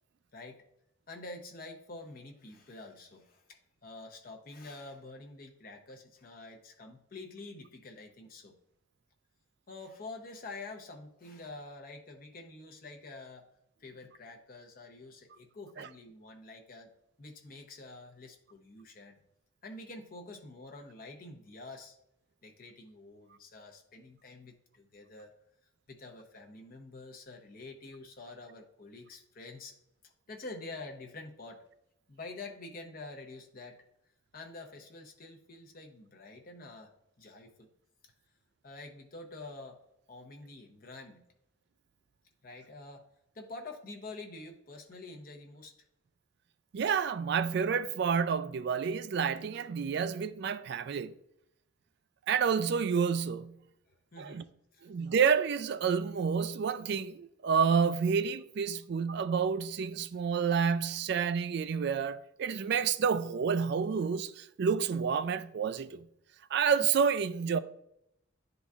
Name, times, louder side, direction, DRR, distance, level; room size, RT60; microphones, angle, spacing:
voice 1, 0.3-0.6 1.1-8.5 9.7-13.5 13.8-16.9 17.2-19.2 19.6-22.0 22.4-25.3 25.9-29.7 30.0-31.6 32.1-33.8 34.3-36.9 37.2-37.7 38.6-39.8 40.1-41.2 42.4-43.1 43.3-45.7 53.9-54.5 54.7-54.9, left 2 dB, 45° left, 0.7 m, -47 dB
voice 2, 46.7-51.1 52.3-53.6 54.2-54.4 54.8-66.0 66.5-67.6, right 6 dB, 55° right, 0.3 m, -29 dB
11.0 x 3.9 x 2.4 m
head